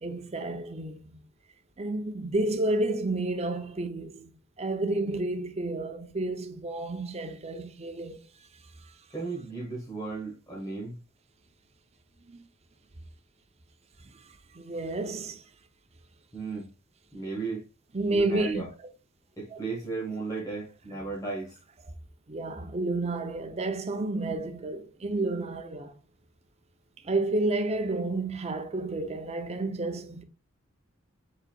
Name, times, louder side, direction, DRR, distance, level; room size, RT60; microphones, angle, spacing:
voice 1, 0.0-1.2 1.8-8.2 12.3-12.4 14.5-15.4 17.9-18.6 19.5-19.6 22.3-25.9 27.0-30.2, right 2 dB, 30° right, 0.6 m, -30 dB
voice 2, 9.1-11.0 16.3-16.7 17.1-17.6 18.1-18.7 19.4-21.6, right 4 dB, 15° left, 1.3 m, -35 dB
4.7 x 3.9 x 2.3 m
head